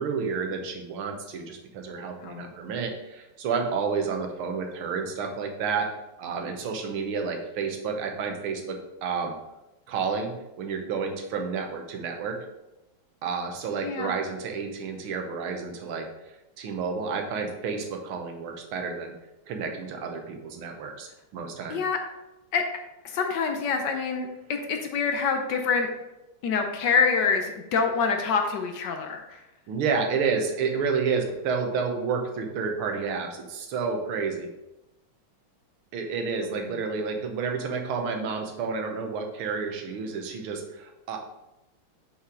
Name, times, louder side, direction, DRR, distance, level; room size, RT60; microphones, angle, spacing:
voice 1, 0.0-5.9 6.2-9.4 9.9-12.4 13.2-16.1 16.6-19.1 19.5-21.8 29.7-34.5 35.9-41.3, right 5 dB, 85° right, 4 dB, 1.9 m, -30 dB
voice 2, 13.8-14.2 21.7-22.0 22.5-22.6 23.0-25.9 26.4-29.4 36.5-36.8, left 5 dB, 65° left, 4 dB, 1.2 m, -26 dB
6.4 x 5.7 x 3.8 m, 0.96 s
omnidirectional pair, 2.3 m